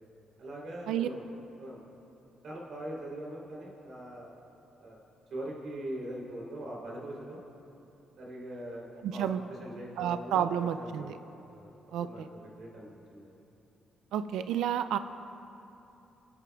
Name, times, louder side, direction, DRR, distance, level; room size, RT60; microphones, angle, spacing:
voice 1, 0.4-1.2 1.6-1.8 2.4-4.3 4.8-5.0 5.3-7.4 8.2-11.7 12.0-13.4, right 1 dB, 65° right, -2 dB, 3.1 m, -42 dB
voice 2, 9.0-9.4 10.0-11.1 11.9-12.3 14.1-15.0, right 9 dB, 85° right, 11 dB, 0.3 m, -30 dB
23.5 x 9.6 x 2.3 m, 2.8 s
cardioid pair, 90°, 0 cm